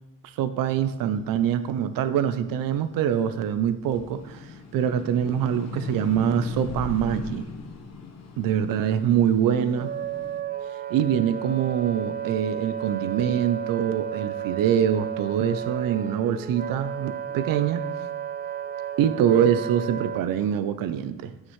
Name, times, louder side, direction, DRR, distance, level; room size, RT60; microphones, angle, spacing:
voice 1, 0.2-7.5 8.4-9.9 10.9-17.8 19.0-21.3, right 9 dB, 75° right, 11 dB, 0.6 m, -24 dB
sound 1, 0.8-3.4 3.8-10.4, left 4 dB, 50° left, 1.3 m, -38 dB
Wind instrument woodwind instrument, 9.4-20.2, right 9 dB, 30° right, 0.4 m, -33 dB
9.2 x 8.9 x 3.2 m, 1.0 s
cardioid pair, 110°, 34 cm